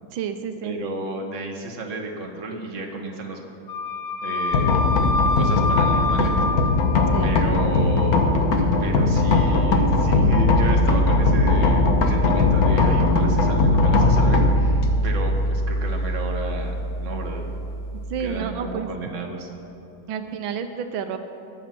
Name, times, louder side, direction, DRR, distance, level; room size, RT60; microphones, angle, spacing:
voice 1, 0.1-0.8 7.1-7.4 18.1-18.9 20.1-21.2, right 7 dB, 85° right, 8 dB, 1.5 m, -30 dB
voice 2, 0.6-3.4 4.2-4.8 5.4-6.4 7.2-8.3 8.8-17.5 18.2-19.5, right 3 dB, 40° right, 1 dB, 1.7 m, -32 dB
Wind instrument woodwind instrument, 3.7-7.3, left 3 dB, 80° left, 2.0 m, -26 dB
sound 1, 4.5-18.4, left 2 dB, 55° left, 1.4 m, -20 dB
21.0 x 7.3 x 6.0 m, 2.8 s
omnidirectional pair, 2.1 m